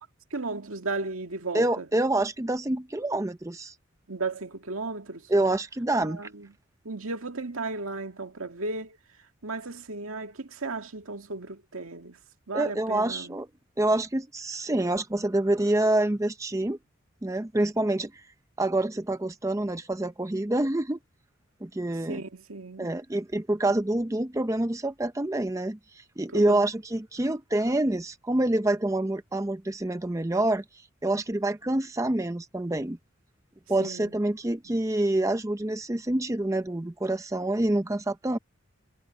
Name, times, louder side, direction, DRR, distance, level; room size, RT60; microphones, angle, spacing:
voice 1, 0.3-1.9 4.1-5.3 6.0-6.5 6.8-9.0 9.4-12.2 12.5-13.4 22.1-22.9 26.3-26.6 33.8-34.1 34.6-34.8, right 3 dB, 85° right, 2.1 m, -35 dB
voice 2, 1.5-3.7 5.3-6.2 12.5-13.5 13.8-16.8 17.2-18.1 18.6-21.0 21.6-22.2 22.8-30.6 31.0-33.0 33.7-38.4, right 1 dB, 15° right, 0.6 m, -27 dB
head